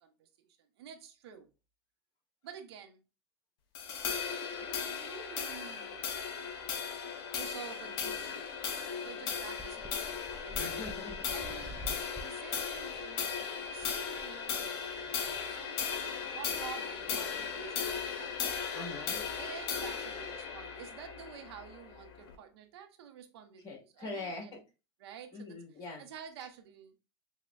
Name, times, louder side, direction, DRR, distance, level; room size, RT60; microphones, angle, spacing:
voice 1, 0.0-0.5 0.8-1.5 2.4-3.0 4.6-6.0 7.3-8.6 9.0-10.6 11.3-11.8 12.2-15.9 16.2-18.9 19.4-24.6 25.0-25.6 26.0-27.0, right 8 dB, 80° right, 0.7 m, -50 dB
sound 1, 3.7-22.3, left 6 dB, 65° left, 0.8 m, -37 dB
sound 2, 8.6-8.7 8.9-9.0 9.6-14.8, equal, 5° right, 0.5 m, -48 dB
voice 2, 10.6-11.3 11.9-12.0 15.3-15.4 18.7-19.2 23.6-24.6 25.3-26.0, left 2 dB, 30° left, 1.8 m, -43 dB
6.1 x 2.1 x 2.3 m
supercardioid pair, 120°, 13 cm